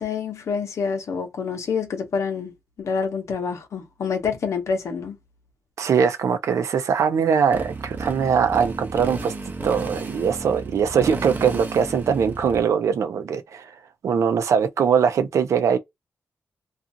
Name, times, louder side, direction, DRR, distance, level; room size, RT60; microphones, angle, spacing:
voice 1, 0.0-5.2, left 5 dB, 75° left, 0.8 m, -27 dB
voice 2, 5.8-9.3 9.6-13.6 14.0-15.8, right 7 dB, 80° right, 0.5 m, -21 dB
Motorcycle, 7.5-12.6, right 3 dB, 35° right, 0.6 m, -33 dB
2.5 x 2.4 x 2.6 m
wide cardioid pair, 150°, 5 cm